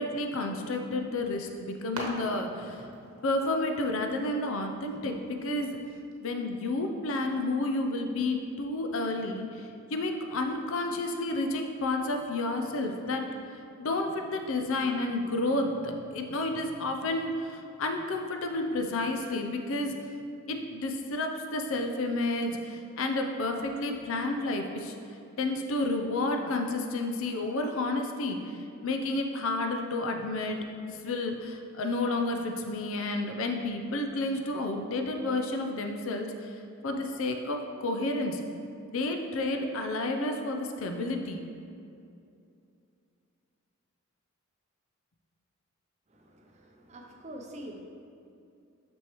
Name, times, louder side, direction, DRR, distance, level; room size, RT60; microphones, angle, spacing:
voice 1, 0.0-2.8 3.2-5.8 6.2-13.2 13.8-19.9 20.5-24.9 25.4-28.6 28.8-36.5 36.8-38.4 38.9-41.4, left 2 dB, 65° left, 4 dB, 0.5 m, -31 dB
sound 1, 1.0-6.1, right 1 dB, 80° right, 1.0 m, -45 dB
voice 2, 46.1-47.8, right 1 dB, 30° right, 2 dB, 0.5 m, -45 dB
6.2 x 6.1 x 3.0 m, 2.5 s
head